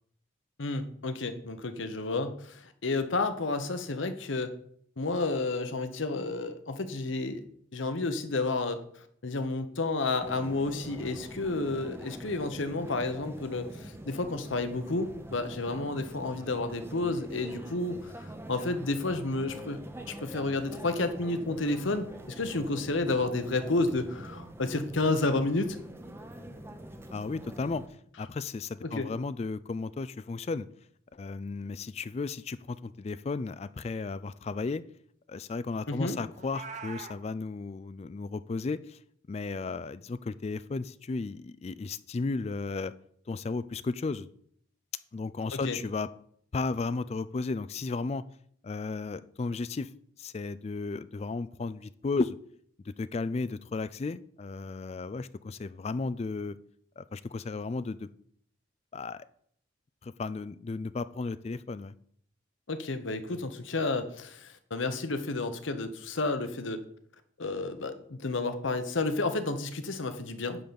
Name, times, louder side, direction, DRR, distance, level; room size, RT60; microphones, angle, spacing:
voice 1, 0.6-4.5 5.0-7.4 7.7-8.8 9.2-19.8 20.1-25.8 28.8-29.1 35.9-36.2 45.5-45.8 62.7-66.8 67.4-70.6, left 2 dB, 75° left, 9 dB, 1.0 m, -31 dB
sound 1, 10.2-27.9, right 1 dB, 10° right, 0.7 m, -45 dB
voice 2, 27.1-27.8 28.2-30.7 31.1-34.8 35.3-39.0 39.3-42.9 43.3-44.3 45.1-46.1 46.5-48.2 48.6-49.9 50.2-52.4 52.9-56.6 57.0-58.1 58.9-59.2 60.0-61.9, left 3 dB, 30° left, 16 dB, 0.3 m, -34 dB
Meow, 36.3-37.2, right 5 dB, 35° right, 1.0 m, -42 dB
10.0 x 4.0 x 7.0 m, 0.64 s
head